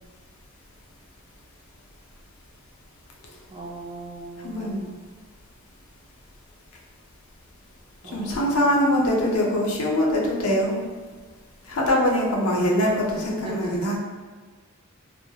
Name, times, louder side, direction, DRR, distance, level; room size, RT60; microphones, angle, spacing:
voice 1, 3.5-4.9 8.0-9.0 12.6-12.7 13.1-14.0, right 2 dB, 25° right, -3 dB, 0.4 m, -39 dB
voice 2, 4.4-4.8 8.1-10.8 11.7-14.0, equal, 90° left, -1 dB, 0.5 m, -23 dB
2.2 x 2.0 x 2.7 m, 1.5 s
head